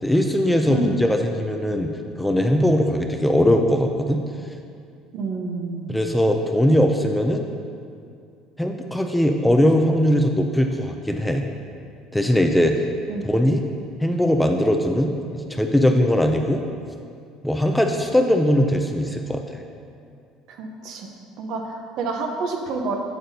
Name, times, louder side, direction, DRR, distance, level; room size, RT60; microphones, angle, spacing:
voice 1, 0.0-4.2 5.9-7.5 8.6-11.4 12.1-12.9 13.2-13.6 14.0-16.6 17.4-19.6, equal, 5° left, 4 dB, 0.4 m, -20 dB
voice 2, 5.1-5.9 13.1-13.3 20.5-21.1 21.4-23.0, right 3 dB, 55° right, 3 dB, 0.8 m, -28 dB
8.2 x 7.6 x 2.8 m, 2.4 s
cardioid pair, 140°, 0 cm